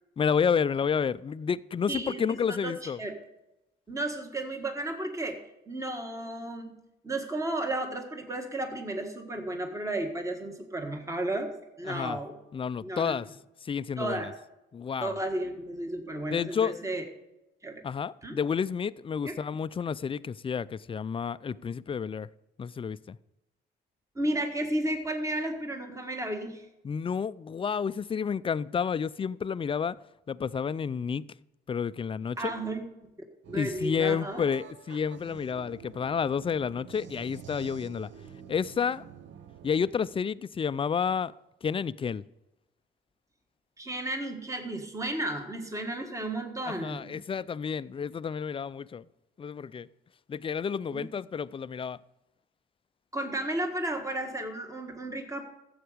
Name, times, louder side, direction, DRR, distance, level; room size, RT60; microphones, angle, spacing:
voice 1, 0.2-3.0 11.9-12.2 12.5-13.3 13.6-14.3 14.7-15.2 16.3-16.7 17.8-22.3 22.6-23.2 26.8-30.0 30.3-31.2 31.7-32.5 33.5-38.1 38.5-39.0 39.6-41.3 41.6-42.2 46.7-49.1 49.4-49.9 50.3-52.0, left 6 dB, 25° left, 0.4 m, -30 dB
voice 2, 1.9-3.1 3.9-5.4 5.7-6.7 7.0-11.5 11.8-12.3 12.8-13.2 14.0-14.3 15.0-17.0 17.6-17.8 18.2-18.4 19.2-19.4 24.1-26.6 32.4-32.9 33.5-34.4 43.8-47.2 50.9-51.0 53.1-55.4, right 1 dB, 15° right, 1.6 m, -33 dB
sound 1, 33.4-39.9, right 8 dB, 70° right, 0.7 m, -48 dB
12.5 x 8.1 x 5.0 m
cardioid pair, 90°, 20 cm